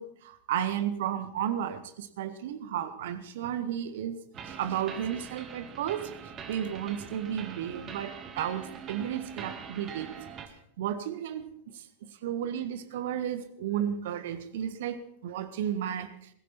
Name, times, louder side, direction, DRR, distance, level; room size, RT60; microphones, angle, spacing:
voice 1, 0.0-4.2 4.4-6.1 6.5-10.1 10.8-11.5 11.7-16.3, right 9 dB, 55° right, 11 dB, 1.5 m, -33 dB
sound 1, 4.3-10.5, right 7 dB, 30° right, 1.9 m, -43 dB
19.5 x 16.5 x 4.3 m, 0.71 s
figure-of-eight pair, 90°, 0 cm